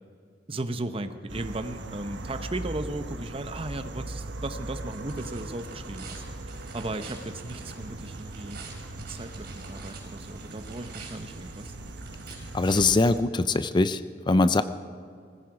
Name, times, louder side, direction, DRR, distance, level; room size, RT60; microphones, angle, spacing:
voice 1, 0.5-6.2 6.7-8.6 9.0-11.7, right 2 dB, 30° right, 10 dB, 0.8 m, -36 dB
sound 1, 1.3-13.2, right 2 dB, 85° right, 1.1 m, -40 dB
sound 2, 4.2-13.7, right 3 dB, 60° right, 4.4 m, -47 dB
voice 2, 12.5-14.6, left 3 dB, 25° left, 13 dB, 0.4 m, -22 dB
19.0 x 15.5 x 4.9 m, 2.3 s
head